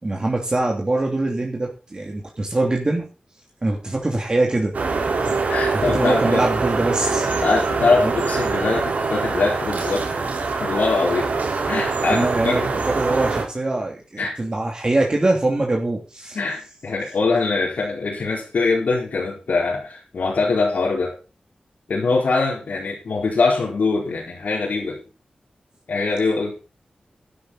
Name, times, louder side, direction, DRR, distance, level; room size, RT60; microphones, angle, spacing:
voice 1, 0.0-3.1 3.6-4.7 5.2-5.3 5.9-7.3 8.0-8.1 12.1-16.4, right 2 dB, 35° right, 0 dB, 3.0 m, -23 dB
sound 1, 4.7-13.4, right 4 dB, 85° right, 4.3 m, -24 dB
voice 2, 5.3-6.4 7.4-10.2 10.6-11.3 11.7-12.6 14.2-14.3 16.3-21.2 21.9-25.0 25.9-26.6, left 3 dB, 80° left, -3 dB, 4.5 m, -22 dB
12.0 x 11.5 x 4.1 m, 0.32 s
wide cardioid pair, 90°, 3 cm